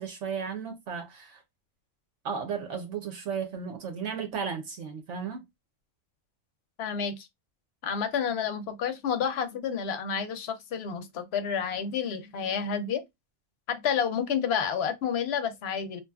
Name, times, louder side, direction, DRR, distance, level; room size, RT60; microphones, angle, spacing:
voice 1, 0.0-1.4 2.2-5.4, right 6 dB, 70° right, 0.9 m, -34 dB
voice 2, 6.8-7.3 7.8-13.0 13.7-16.0, left 7 dB, 65° left, 0.8 m, -30 dB
2.7 x 2.3 x 2.2 m
omnidirectional pair, 1.3 m